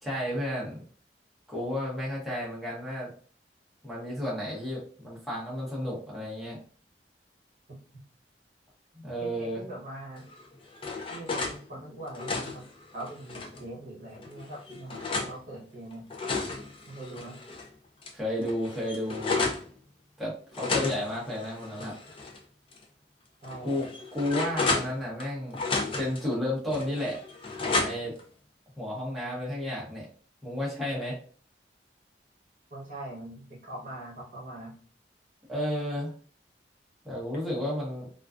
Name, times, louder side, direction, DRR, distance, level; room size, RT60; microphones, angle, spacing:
voice 1, 0.0-0.8 1.5-3.1 3.8-6.6 8.9-9.6 18.1-19.5 20.2-22.0 23.6-23.9 24.1-25.6 26.0-27.2 27.6-28.1 28.8-30.1 30.4-31.2 35.5-36.1 37.0-38.1, left 1 dB, ahead, -6 dB, 0.8 m, -32 dB
voice 2, 9.2-10.3 11.1-12.7 12.9-16.1 16.9-17.4 23.4-23.9 32.7-34.7, right 1 dB, 45° right, -3 dB, 0.8 m, -42 dB
sound 1, 10.3-11.6 12.0-13.6 14.2-15.3 15.9-17.7 18.0-18.1 18.4-19.7 20.5-22.4 22.7-22.8 23.4-25.3 25.5-26.2 26.7-28.2, left 3 dB, 30° left, 0.4 m, -32 dB
2.4 x 2.2 x 2.4 m, 0.43 s
head